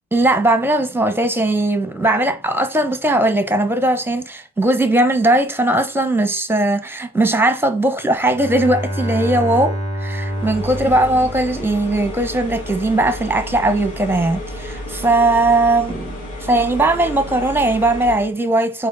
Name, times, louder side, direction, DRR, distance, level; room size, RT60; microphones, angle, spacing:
voice 1, 0.1-18.9, right 2 dB, 5° right, 1.0 m, -18 dB
Bowed string instrument, 8.2-12.0, equal, 20° left, 3.3 m, -27 dB
sound 1, 10.2-18.3, left 1 dB, 85° left, 2.7 m, -31 dB
6.4 x 4.5 x 4.1 m
cardioid pair, 90°, 30 cm